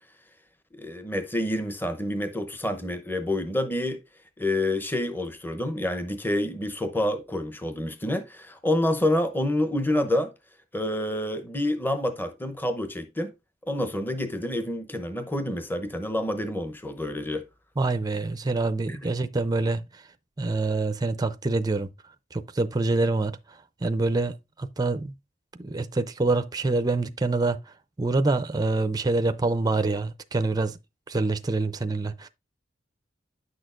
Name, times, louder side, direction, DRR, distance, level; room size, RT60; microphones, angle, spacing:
voice 1, 0.7-4.0 4.4-10.3 10.7-13.3 13.7-17.4 18.9-19.0, left 1 dB, 10° left, 0.7 m, -28 dB
voice 2, 17.8-19.8 20.4-21.9 22.3-23.3 23.8-25.1 25.6-27.6 28.0-30.7 31.1-32.3, right 3 dB, 20° right, 0.4 m, -26 dB
9.6 x 6.3 x 2.5 m
head